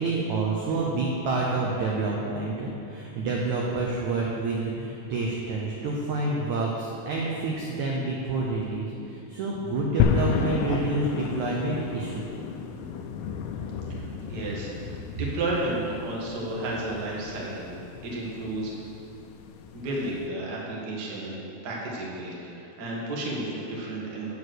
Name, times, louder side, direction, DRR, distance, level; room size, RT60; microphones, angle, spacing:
voice 1, 0.0-12.2, right 3 dB, 75° right, -2 dB, 1.7 m, -28 dB
sound 1, 10.0-20.3, left 6 dB, 85° left, 2.0 m, -32 dB
voice 2, 13.9-17.8 18.0-18.7 19.7-21.4 21.6-24.3, right 2 dB, 50° right, -4 dB, 1.2 m, -32 dB
8.5 x 7.2 x 6.4 m, 2.7 s
omnidirectional pair, 4.5 m